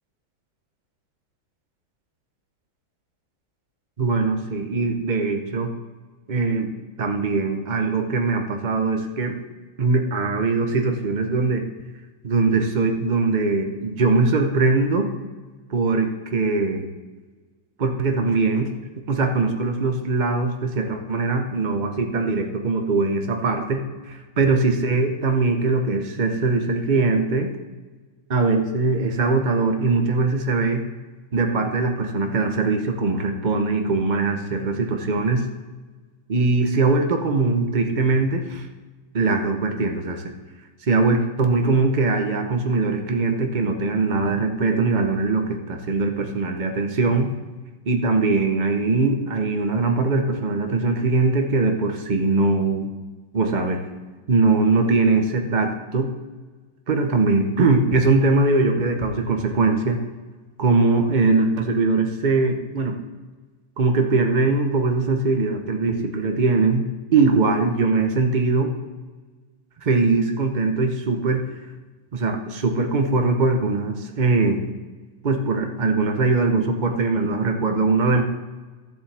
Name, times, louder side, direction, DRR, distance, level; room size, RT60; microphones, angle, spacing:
voice 1, 4.0-5.7 6.3-6.7 7.0-9.4 9.8-11.7 12.2-15.1 15.7-16.9 17.8-18.7 19.1-27.5 28.3-30.8 31.3-35.4 36.3-38.6 39.1-40.3 40.9-47.3 47.9-52.9 53.3-53.8 54.3-56.1 56.9-60.0 60.6-63.0 63.8-68.7 69.8-71.4 72.1-74.6 75.2-78.2, right 3 dB, 45° right, 4 dB, 0.6 m, -21 dB
14.5 x 7.2 x 3.4 m, 1.3 s
omnidirectional pair, 2.2 m